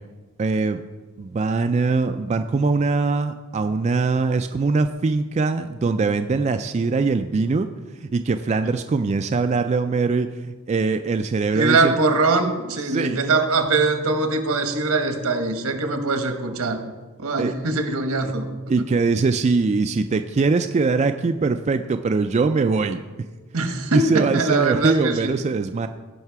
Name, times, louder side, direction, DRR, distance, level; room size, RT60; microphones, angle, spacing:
voice 1, 0.4-0.8 1.2-7.7 8.0-11.9 12.8-13.2 17.4-17.5 18.7-23.0 23.9-25.9, right 4 dB, 30° right, 7 dB, 0.3 m, -22 dB
voice 2, 11.5-16.8 17.2-18.5 23.5-25.3, right 3 dB, 80° right, 6 dB, 1.2 m, -22 dB
15.5 x 5.7 x 4.7 m, 1.3 s
head